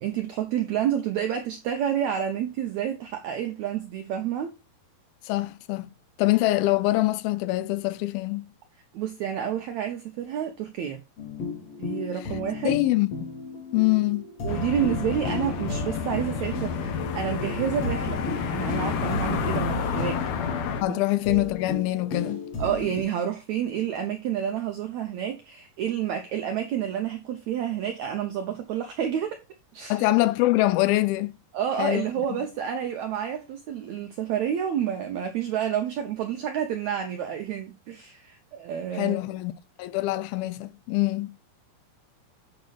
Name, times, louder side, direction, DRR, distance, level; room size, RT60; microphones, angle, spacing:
voice 1, 0.0-4.5 8.9-11.0 11.8-12.8 14.4-20.2 22.6-29.4 29.7-30.0 31.5-39.2, right 9 dB, 80° right, 1.6 m, -29 dB
voice 2, 5.2-5.9 6.2-8.5 12.6-13.1 13.7-14.3 20.8-22.5 29.9-31.4 31.8-32.1 32.4-32.5 38.9-39.5 39.8-41.3, left 18 dB, 85° left, 2.5 m, -24 dB
sound 1, 11.2-23.0, left 4 dB, 50° left, 2.0 m, -35 dB
sound 2, 14.5-20.8, left 6 dB, 70° left, 1.8 m, -30 dB
8.2 x 5.3 x 4.0 m
omnidirectional pair, 4.3 m